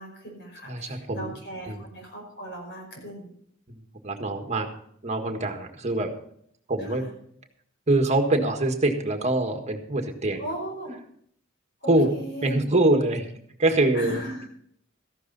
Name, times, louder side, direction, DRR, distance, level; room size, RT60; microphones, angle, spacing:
voice 1, 0.0-3.3 6.8-7.1 10.4-10.9 11.8-12.6 13.9-14.5, right 1 dB, 55° left, 1 dB, 5.5 m, -37 dB
voice 2, 0.7-1.3 1.7-1.8 3.7-4.7 5.0-6.1 6.7-7.1 7.9-10.4 11.9-12.1 12.4-13.3 13.6-14.2, right 2 dB, 35° right, 4 dB, 1.7 m, -24 dB
14.5 x 11.5 x 4.1 m, 0.66 s
head